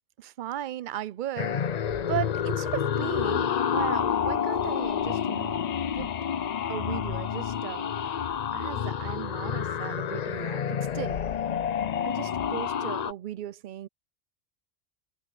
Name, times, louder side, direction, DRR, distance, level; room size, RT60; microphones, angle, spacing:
voice 1, 0.2-5.6 5.9-6.1 6.7-8.2 8.5-11.2 12.0-13.9, right 12 dB, 60° right, 0.5 m, -36 dB
sound 1, 1.4-13.1, left 8 dB, 55° left, 0.5 m, -29 dB
omnidirectional pair, 1.3 m